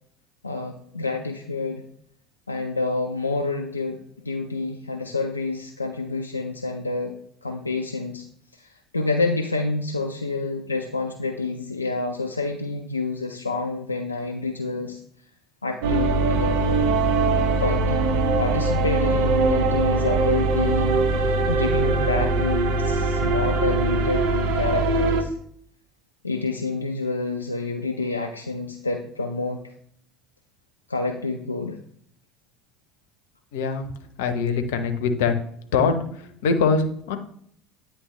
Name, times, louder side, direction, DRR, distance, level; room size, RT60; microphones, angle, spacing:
voice 1, 0.4-1.8 2.5-4.0 4.2-7.1 7.4-8.2 8.5-15.0 15.6-16.5 17.3-18.0 18.4-25.4 26.2-29.6 30.9-31.8, left 3 dB, 90° left, 3 dB, 0.4 m, -28 dB
sound 1, 15.8-25.2, right 3 dB, 60° right, 0.7 m, -22 dB
voice 2, 33.5-33.9 34.2-35.3 35.7-37.2, left 5 dB, 70° left, 8 dB, 0.8 m, -23 dB
9.4 x 3.3 x 3.1 m, 0.64 s
figure-of-eight pair, 65°, 0 cm